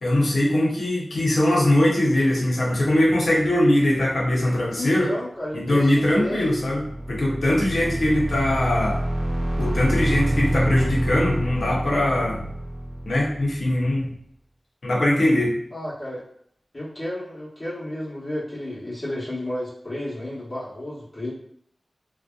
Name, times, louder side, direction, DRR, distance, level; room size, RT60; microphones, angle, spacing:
voice 1, 0.0-5.1 5.5-9.0 9.6-12.5 13.1-14.1 14.8-15.5, left 1 dB, 85° left, -3 dB, 0.7 m, -21 dB
voice 2, 4.8-6.5 15.7-16.2 16.7-21.3, left 1 dB, 35° left, -8 dB, 0.8 m, -32 dB
sound 1, 6.2-13.9, right 1 dB, 45° right, 0.4 m, -27 dB
2.6 x 2.1 x 2.3 m, 0.67 s
wide cardioid pair, 65°, 0 cm